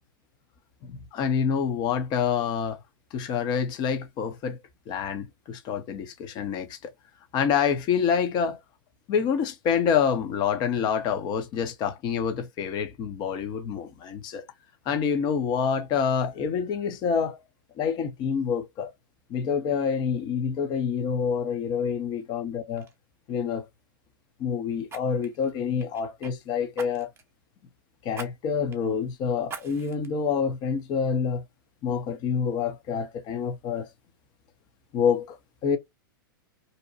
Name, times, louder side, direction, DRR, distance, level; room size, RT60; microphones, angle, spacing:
voice 1, 0.8-2.8 3.1-4.6 4.9-6.8 7.3-8.6 9.1-14.5 14.9-17.4 17.8-18.9 19.3-22.8 23.3-23.7 24.4-27.1 28.0-31.4 31.8-33.9 34.9-35.4 35.6-35.8, left 7 dB, 40° left, 0.8 m, -27 dB
Fire, 22.2-22.4 22.8-23.0 24.9-26.3 26.8-27.3 28.1-28.3 28.7-28.8 29.5-30.1 30.6-30.7, right 6 dB, 20° right, 0.8 m, -42 dB
2.7 x 2.2 x 2.6 m
hypercardioid pair, 110°, 12 cm